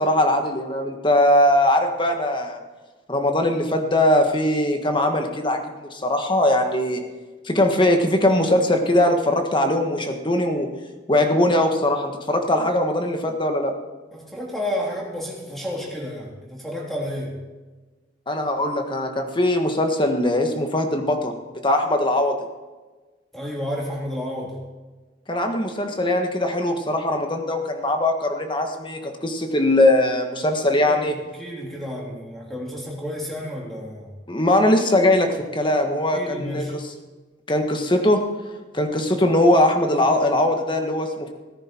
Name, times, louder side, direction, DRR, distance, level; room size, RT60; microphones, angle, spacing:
voice 1, 0.0-2.6 3.1-7.0 7.4-10.7 11.1-13.7 18.3-21.3 21.6-22.4 25.3-31.2 34.3-36.8 37.5-38.2 38.7-41.3, left 1 dB, 25° left, 5 dB, 1.6 m, -20 dB
voice 2, 14.1-17.3 23.3-24.6 30.8-34.1 36.1-36.8, left 1 dB, ahead, -3 dB, 3.3 m, -31 dB
18.0 x 10.5 x 4.6 m, 1.3 s
head